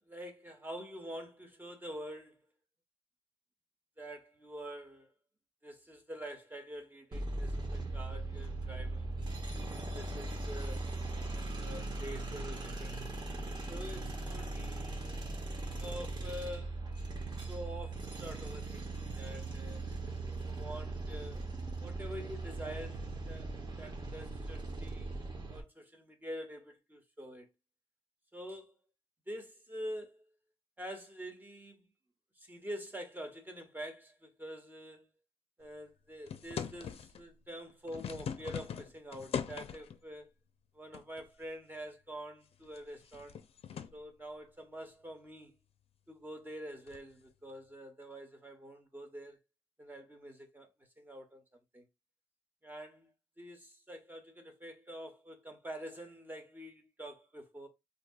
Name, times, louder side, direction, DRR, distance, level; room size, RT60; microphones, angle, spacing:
voice 1, 0.0-2.4 4.0-5.1 5.6-9.2 9.7-10.9 11.5-13.1 13.7-15.0 15.8-16.8 17.5-19.9 20.4-21.5 21.8-25.1 25.5-27.5 28.3-28.7 29.3-30.2 30.8-31.8 32.4-35.1 35.6-40.3 40.7-43.4 43.9-45.5 46.1-49.4 49.8-50.7 51.0-51.4 51.7-51.9 52.6-53.1 53.4-57.7, equal, 15° right, 1.1 m, -46 dB
sound 1, 7.1-25.6, right 2 dB, 40° right, 1.0 m, -39 dB
sound 2, 36.3-37.2 37.7-40.0 40.9-41.4 41.8-41.9 42.5-44.0 46.9-47.1, left 7 dB, 65° left, 0.5 m, -41 dB
3.9 x 2.7 x 2.3 m
cardioid pair, 65°, 11 cm